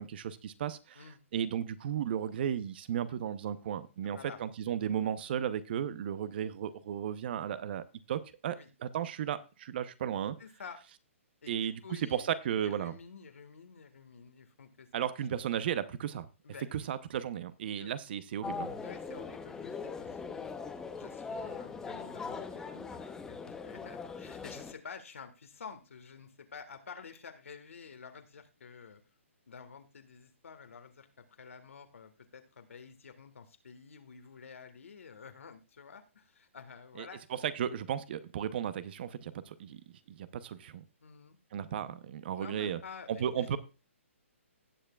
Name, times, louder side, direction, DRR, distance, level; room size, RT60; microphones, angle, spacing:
voice 1, 0.0-1.0 1.3-10.4 11.5-13.0 14.9-16.3 16.7-18.8 37.0-39.8 40.1-40.8 41.5-42.8 43.1-43.6, right 9 dB, 45° right, 14 dB, 0.8 m, -35 dB
voice 2, 4.0-4.4 8.5-8.7 10.4-10.8 11.4-12.3 12.6-15.1 16.4-16.7 17.8-17.9 18.8-20.5 20.9-29.0 29.5-37.2 41.0-41.4 42.3-43.6, left 6 dB, 75° left, 8 dB, 1.7 m, -50 dB
sound 1, 18.4-24.7, left 5 dB, 5° left, 0.8 m, -41 dB
17.5 x 6.7 x 2.4 m, 0.31 s
hypercardioid pair, 145°, 7 cm